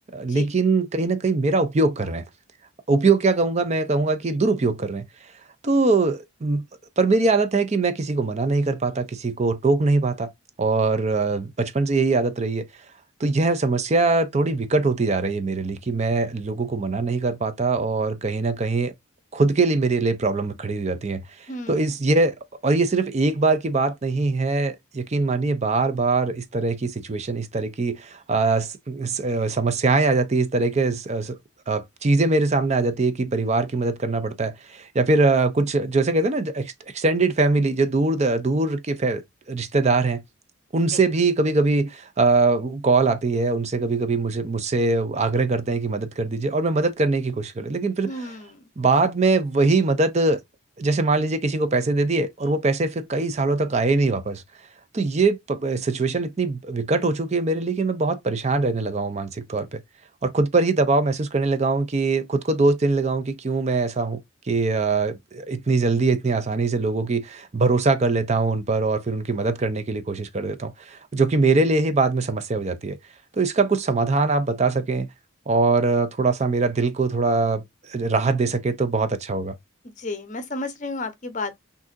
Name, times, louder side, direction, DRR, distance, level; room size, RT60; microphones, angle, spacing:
voice 1, 0.1-2.2 2.9-5.0 5.6-6.6 7.0-10.3 10.6-12.7 13.2-18.9 19.3-22.3 22.6-31.4 31.7-39.2 39.5-40.2 40.7-48.3 48.8-50.4 50.8-54.4 54.9-59.8 60.2-64.2 64.5-73.0 73.3-75.1 75.5-79.6, right 3 dB, 35° right, 0.5 m, -22 dB
voice 2, 21.5-21.8 40.9-41.0 48.0-48.7 80.0-81.6, left 2 dB, 35° left, 0.8 m, -32 dB
6.1 x 2.7 x 2.5 m
head